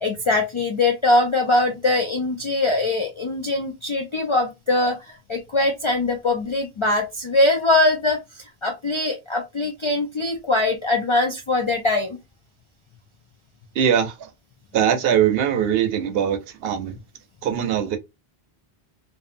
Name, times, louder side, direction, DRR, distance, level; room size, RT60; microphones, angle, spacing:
voice 1, 0.0-8.2 8.6-12.2, left 2 dB, 55° left, 0.3 m, -22 dB
voice 2, 13.8-14.3 14.7-16.9 17.4-18.0, right 9 dB, 75° right, 0.8 m, -21 dB
2.7 x 2.3 x 2.5 m
omnidirectional pair, 1.0 m